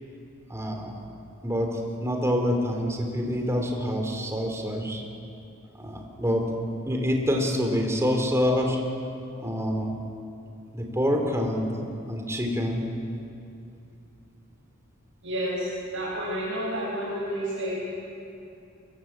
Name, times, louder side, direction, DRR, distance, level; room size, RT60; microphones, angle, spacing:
voice 1, 0.5-1.0 1.4-5.0 5.7-6.5 6.9-8.8 9.4-9.9 10.7-11.7 12.1-12.8, equal, 15° right, 2 dB, 3.2 m, -26 dB
voice 2, 15.2-17.8, equal, 65° right, -7 dB, 7.9 m, -30 dB
23.0 x 21.5 x 8.8 m, 2.6 s
head